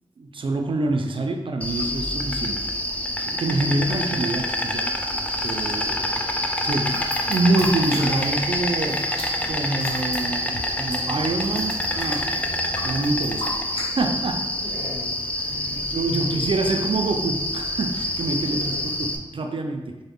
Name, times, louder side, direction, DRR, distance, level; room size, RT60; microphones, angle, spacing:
voice 1, 0.2-2.7 3.0-4.9 5.4-5.9 6.6-9.2 9.5-12.4 12.8-14.5 15.4-20.0, right 2 dB, 55° right, 3 dB, 0.4 m, -26 dB
Insect, 1.6-19.2, left 1 dB, 15° left, 0.3 m, -27 dB
sound 1, 5.3-13.3, equal, 15° right, 0.7 m, -42 dB
voice 2, 5.7-6.4 14.6-15.2 16.0-16.5 18.5-19.0, left 1 dB, 45° left, -6 dB, 1.3 m, -40 dB
sound 2, 6.8-8.5 8.7-13.9, left 1 dB, 70° left, 1.0 m, -38 dB
3.9 x 2.0 x 3.5 m, 1.1 s
wide cardioid pair, 80°, 10 cm